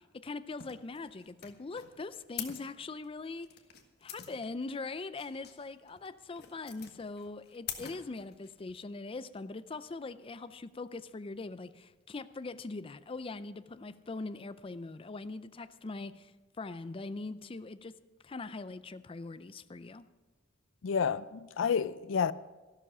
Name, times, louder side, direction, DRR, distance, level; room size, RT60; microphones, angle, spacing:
voice 1, 0.0-3.5 4.0-16.3 16.6-18.0 18.2-20.0, left 3 dB, 30° left, 0.4 m, -41 dB
sound 1, 0.6-8.7, left 9 dB, 55° left, 1.4 m, -46 dB
voice 2, 20.8-22.3, left 6 dB, 90° left, 0.4 m, -30 dB
13.5 x 12.0 x 5.5 m
head